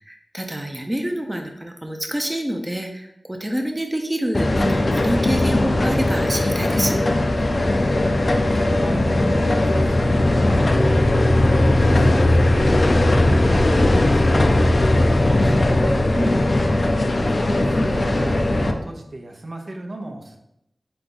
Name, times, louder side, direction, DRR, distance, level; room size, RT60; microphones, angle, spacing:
voice 1, 0.0-7.0 16.1-16.5, right 1 dB, 20° right, 3 dB, 0.6 m, -27 dB
sound 1, 4.3-18.7, left 1 dB, 60° left, 0.5 m, -18 dB
voice 2, 8.5-10.6 11.1-13.0 13.5-15.7 17.2-20.4, right 2 dB, 70° right, 1 dB, 0.8 m, -35 dB
4.0 x 3.5 x 3.8 m, 0.81 s
cardioid pair, 40°, 0 cm